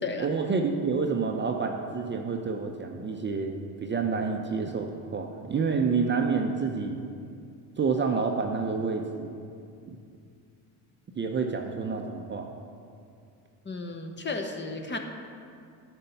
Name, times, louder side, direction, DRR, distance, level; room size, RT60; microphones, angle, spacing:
voice 1, 0.2-7.0 7.8-9.3 9.9-10.0 11.2-12.5, right 5 dB, 25° right, 3 dB, 0.6 m, -28 dB
voice 2, 13.6-15.0, left 3 dB, 25° left, 4 dB, 0.9 m, -33 dB
10.5 x 4.5 x 5.6 m, 2.4 s
hypercardioid pair, 75°, 48 cm